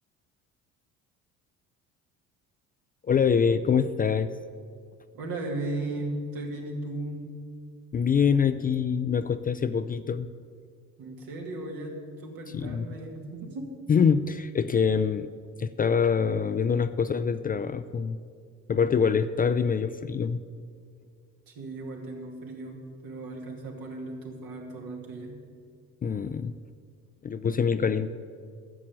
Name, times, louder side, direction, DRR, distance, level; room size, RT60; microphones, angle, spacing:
voice 1, 3.1-4.3 7.9-10.3 12.5-12.9 13.9-15.3 15.6-18.2 18.7-20.4 26.0-26.5 27.2-28.1, left 6 dB, 25° left, 12 dB, 0.4 m, -25 dB
voice 2, 5.1-7.3 11.0-13.7 21.5-25.4, right 2 dB, 70° right, 1 dB, 2.3 m, -36 dB
11.0 x 7.4 x 7.5 m, 2.2 s
supercardioid pair, 70°, 36 cm